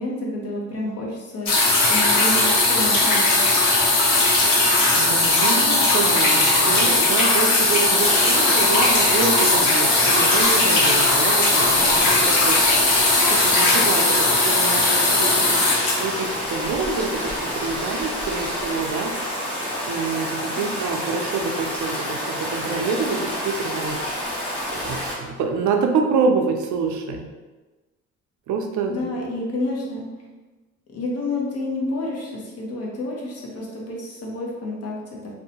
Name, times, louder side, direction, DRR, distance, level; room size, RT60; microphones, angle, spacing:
voice 1, 0.0-3.4 20.5-20.7 28.9-30.0 30.9-35.2, left 2 dB, 55° left, -2 dB, 0.8 m, -29 dB
sound 1, 1.5-16.8 17.7-17.8, left 2 dB, 85° left, 0.8 m, -18 dB
voice 2, 4.9-12.6 13.3-19.1 19.9-24.0 24.3-27.2 28.5-29.1, right 5 dB, 75° right, 4 dB, 0.5 m, -27 dB
Stream, 7.9-25.1, equal, 5° left, 1.3 m, -28 dB
2.6 x 2.1 x 2.8 m, 1.2 s
cardioid pair, 90°, 30 cm